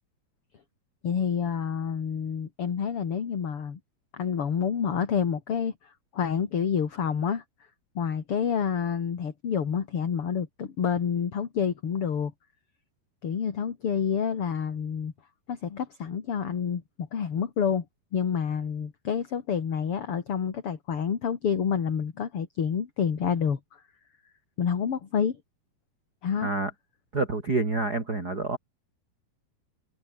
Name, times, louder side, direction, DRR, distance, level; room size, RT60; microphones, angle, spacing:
voice 1, 1.0-3.8 4.1-7.4 7.9-12.3 13.2-15.1 15.5-17.8 18.1-23.6 24.6-25.4 26.2-26.5, left 7 dB, 40° left, 2.7 m, -28 dB
voice 2, 27.1-28.6, right 3 dB, 25° right, 4.2 m, -27 dB
omnidirectional pair, 4.5 m